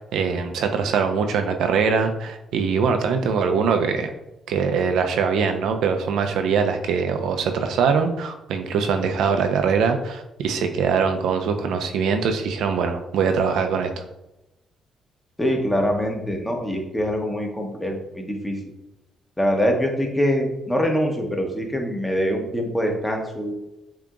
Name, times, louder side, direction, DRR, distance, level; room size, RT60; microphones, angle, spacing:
voice 1, 0.1-4.1 4.5-14.0, right 5 dB, 80° right, 6 dB, 0.5 m, -22 dB
voice 2, 15.4-18.6 19.4-23.6, equal, 10° left, 2 dB, 1.1 m, -24 dB
7.1 x 2.8 x 2.5 m, 0.92 s
cardioid pair, 90°, 0 cm